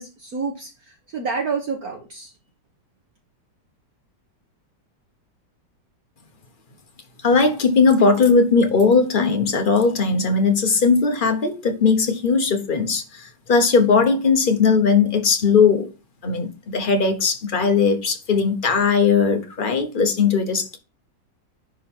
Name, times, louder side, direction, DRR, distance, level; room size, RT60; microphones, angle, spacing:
voice 1, 0.0-2.3, right 5 dB, 55° right, 1.4 m, -29 dB
voice 2, 7.2-15.9 16.2-20.8, left 5 dB, 40° left, 0.8 m, -18 dB
10.5 x 3.6 x 4.4 m
omnidirectional pair, 2.0 m